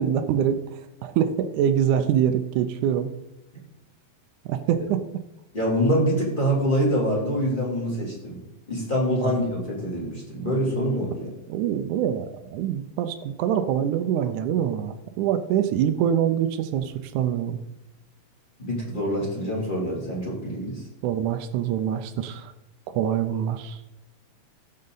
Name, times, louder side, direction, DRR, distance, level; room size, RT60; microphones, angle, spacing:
voice 1, 0.0-3.1 4.4-5.0 11.5-17.6 21.0-22.5 22.9-23.8, right 9 dB, 80° right, 7 dB, 1.8 m, -25 dB
voice 2, 5.5-8.4 8.7-11.3 18.6-20.8, equal, 15° left, -3 dB, 2.8 m, -25 dB
16.0 x 6.5 x 4.0 m, 0.91 s
omnidirectional pair, 4.0 m